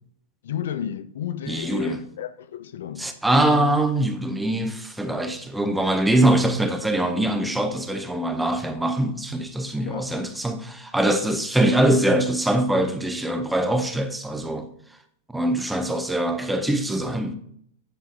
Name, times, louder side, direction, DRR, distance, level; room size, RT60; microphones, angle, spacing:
voice 1, 0.4-3.1 9.9-10.1, left 9 dB, 75° left, 0.6 m, -32 dB
voice 2, 1.5-2.0 3.0-14.7 15.3-17.4, right 1 dB, 5° right, 0.6 m, -23 dB
9.0 x 6.9 x 3.8 m
supercardioid pair, 170°, 0 cm